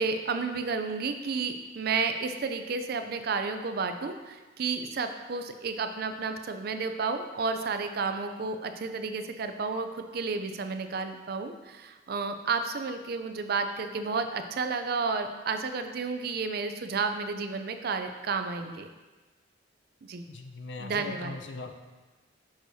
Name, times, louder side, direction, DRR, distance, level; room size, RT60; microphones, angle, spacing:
voice 1, 0.0-18.9 20.0-20.2 20.8-21.3, right 4 dB, 50° right, 8 dB, 0.4 m, -31 dB
voice 2, 20.3-21.7, left 3 dB, 65° left, 6 dB, 0.5 m, -40 dB
6.3 x 6.1 x 2.7 m, 1.2 s
head